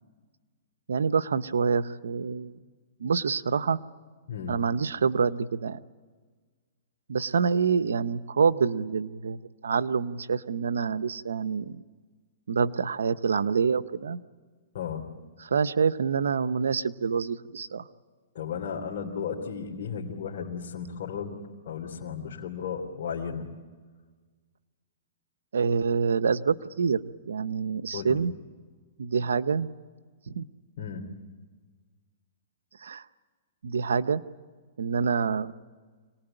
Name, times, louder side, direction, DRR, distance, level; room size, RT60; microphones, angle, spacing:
voice 1, 0.9-2.6 3.0-3.8 4.5-5.8 7.1-11.8 12.5-14.2 15.4-17.8 25.5-27.0 27.3-28.3 29.0-29.7 30.3-30.4 32.8-33.0 33.6-34.2 34.8-35.5, right 5 dB, 90° right, 14 dB, 0.9 m, -26 dB
voice 2, 4.3-4.6 14.7-15.1 18.3-21.4 21.6-23.5 27.9-28.2 30.8-31.2, left 6 dB, 65° left, -2 dB, 3.0 m, -34 dB
26.0 x 19.5 x 9.0 m, 1.5 s
hypercardioid pair, 140°, 0 cm